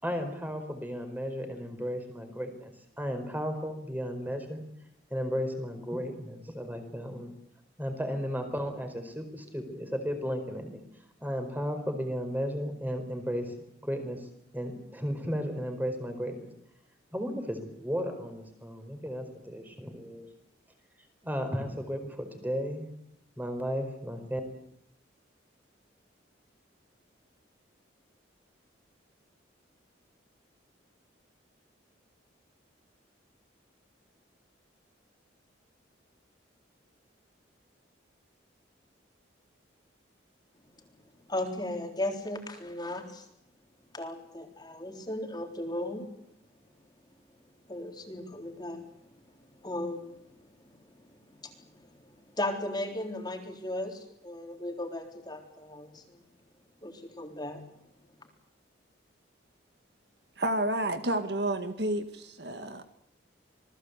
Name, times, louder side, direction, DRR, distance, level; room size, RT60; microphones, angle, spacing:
voice 1, 0.0-2.7 3.0-4.6 5.1-7.3 7.8-10.8 11.2-13.5 13.8-16.5 17.1-20.3 21.2-22.8 23.4-24.4, equal, 10° right, 6 dB, 4.6 m, -34 dB
voice 2, 41.3-43.2 43.9-46.1 47.7-48.9 49.6-50.1 51.4-51.5 52.4-56.2 56.8-57.6, left 1 dB, 20° left, 3 dB, 3.8 m, -36 dB
voice 3, 60.4-62.9, right 1 dB, 60° right, 8 dB, 1.9 m, -30 dB
27.5 x 19.5 x 8.2 m, 0.76 s
head